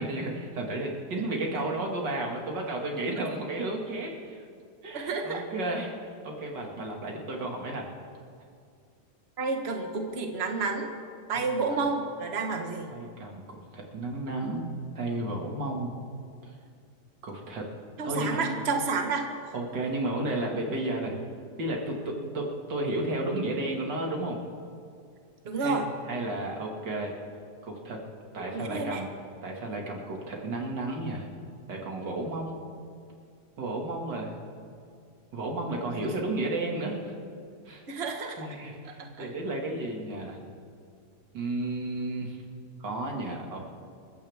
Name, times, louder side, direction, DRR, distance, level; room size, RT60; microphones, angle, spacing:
voice 1, 0.0-4.5 4.8-7.9 11.3-11.8 12.9-14.7 15.0-15.9 16.4-16.5 17.2-17.7 18.0-18.6 19.5-21.2 21.6-24.4 25.6-25.8 26.1-27.1 27.6-28.0 28.3-29.1 29.4-31.3 31.7-32.6 33.6-34.3 35.3-37.1 37.7-37.8 38.4-40.4 41.3-42.4 42.8-43.6, right 2 dB, 90° right, 0 dB, 2.7 m, -33 dB
voice 2, 4.9-5.5 9.4-10.9 11.3-12.9 18.0-19.3 25.4-25.9 28.5-29.0 36.2-36.3 37.9-38.5 38.8-39.3, right 4 dB, 40° right, 3 dB, 1.6 m, -30 dB
27.5 x 14.5 x 3.5 m, 2.3 s
omnidirectional pair, 1.8 m